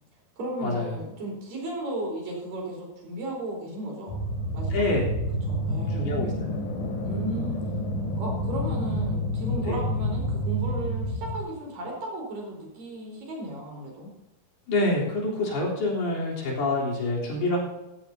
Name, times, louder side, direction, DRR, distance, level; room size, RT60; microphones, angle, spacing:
voice 1, 0.4-4.2 4.5-4.8 5.4-6.1 7.0-7.6 8.2-14.1, right 1 dB, 60° right, 0 dB, 5.9 m, -35 dB
sound 1, 4.1-11.4, equal, 55° left, 4.1 m, -29 dB
voice 2, 4.7-5.1 5.9-6.3 9.7-9.8 14.7-17.6, left 2 dB, 85° left, -4 dB, 5.6 m, -26 dB
15.0 x 14.0 x 2.8 m, 1.0 s
omnidirectional pair, 4.4 m